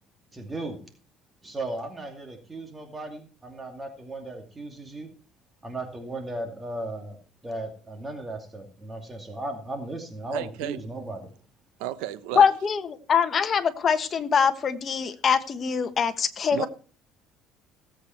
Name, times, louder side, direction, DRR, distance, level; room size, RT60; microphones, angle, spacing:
voice 1, 0.3-0.8 1.4-5.1 5.6-7.2 7.4-11.3, right 2 dB, 20° right, 2.5 m, -36 dB
voice 2, 10.3-10.8 11.8-12.4 16.5-16.7, right 13 dB, 90° right, 1.1 m, -33 dB
voice 3, 12.3-16.7, left 6 dB, 35° left, 1.4 m, -23 dB
17.0 x 8.3 x 4.5 m
cardioid pair, 120°, 0 cm